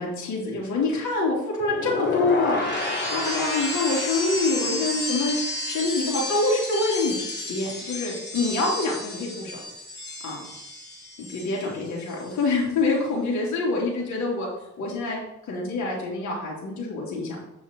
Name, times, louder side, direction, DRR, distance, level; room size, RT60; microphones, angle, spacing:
voice 1, 0.0-2.6 3.1-7.1 7.5-9.6 10.2-10.4 11.2-14.5 14.8-17.4, left 3 dB, 70° left, -3 dB, 3.4 m, -26 dB
sound 1, 1.6-11.7 12.0-12.4, left 2 dB, 35° left, 3.3 m, -31 dB
8.4 x 5.6 x 4.7 m, 0.90 s
cardioid pair, 90°, 30 cm